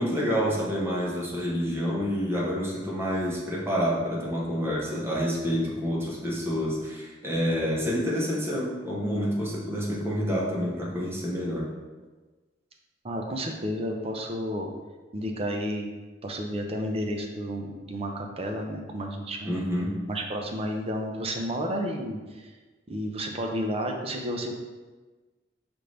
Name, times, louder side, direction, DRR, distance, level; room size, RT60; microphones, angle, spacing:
voice 1, 0.0-11.7 19.4-19.9, equal, 15° right, -5 dB, 1.0 m, -28 dB
voice 2, 13.0-14.7 15.1-15.9 16.2-19.6 20.1-22.5 22.9-24.5, equal, 35° right, 2 dB, 0.5 m, -31 dB
5.7 x 2.6 x 3.3 m, 1.3 s
head